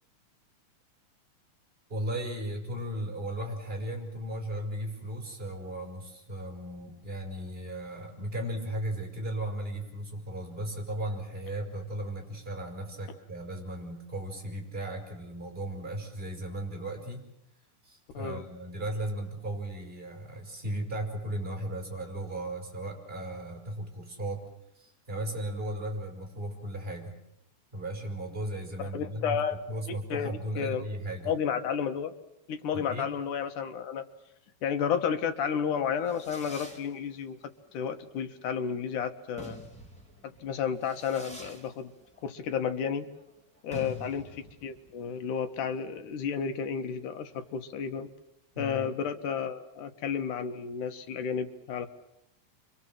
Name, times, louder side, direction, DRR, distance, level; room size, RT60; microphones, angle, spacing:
voice 1, 1.9-17.2 17.8-24.4 24.7-27.1 27.7-29.4 29.7-31.3 32.7-33.0 43.7-44.0 48.5-48.8, right 1 dB, 15° right, 2 dB, 5.9 m, -36 dB
voice 2, 18.1-18.5 28.8-29.6 29.9-30.9 31.3-32.1 32.5-34.1 34.6-39.6 40.2-41.9 42.2-43.1 43.6-48.1 48.6-51.9, left 7 dB, 85° left, 7 dB, 3.0 m, -32 dB
Fireworks, 35.7-47.9, right 1 dB, ahead, 3.6 m, -51 dB
28.5 x 24.5 x 7.6 m, 0.81 s
omnidirectional pair, 3.5 m